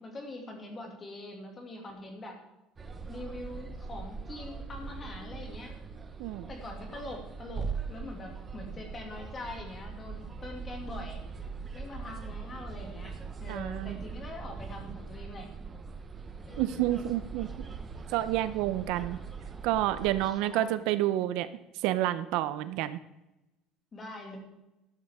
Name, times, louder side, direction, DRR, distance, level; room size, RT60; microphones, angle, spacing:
voice 1, 0.0-2.4 3.1-5.7 6.5-11.3 11.7-13.1 13.4-15.5 16.4-17.0 20.2-20.8 23.9-24.4, left 2 dB, 20° left, 2 dB, 2.3 m, -43 dB
sound 1, 2.8-20.3, right 5 dB, 15° right, 0.8 m, -41 dB
voice 2, 13.5-14.0 16.6-17.5 18.1-19.2 19.6-21.5 21.7-23.0, right 14 dB, 60° right, 13 dB, 0.6 m, -29 dB
13.0 x 12.0 x 3.6 m, 0.93 s
cardioid pair, 180°, 0 cm